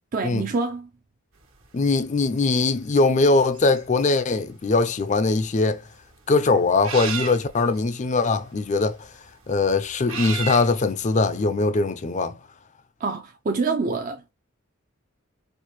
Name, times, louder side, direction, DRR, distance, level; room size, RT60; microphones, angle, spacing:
voice 1, 0.1-0.9 13.0-14.3, right 4 dB, 40° right, 0.4 m, -26 dB
sound 1, 1.4-11.5, right 6 dB, 80° right, 1.3 m, -37 dB
voice 2, 1.7-5.8 6.3-9.0 9.5-12.4, left 3 dB, 35° left, 0.4 m, -21 dB
4.5 x 2.2 x 3.1 m
head